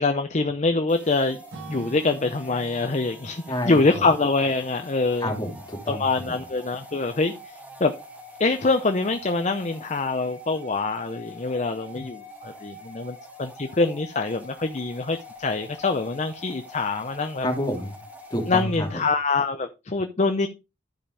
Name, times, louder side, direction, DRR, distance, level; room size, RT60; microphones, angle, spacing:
voice 1, 0.0-1.4 1.7-5.3 5.9-7.3 7.8-7.9 8.4-17.5 18.5-20.5, left 3 dB, 40° left, 0.7 m, -24 dB
sound 1, 0.9-19.1, equal, 10° right, 2.4 m, -45 dB
Acoustic guitar / Strum, 1.5-5.5, right 2 dB, 90° right, 1.9 m, -45 dB
voice 2, 3.5-4.1 5.2-6.4 11.9-12.0 17.4-18.0 18.3-19.1, equal, 25° left, 2.7 m, -29 dB
12.5 x 5.2 x 3.3 m
head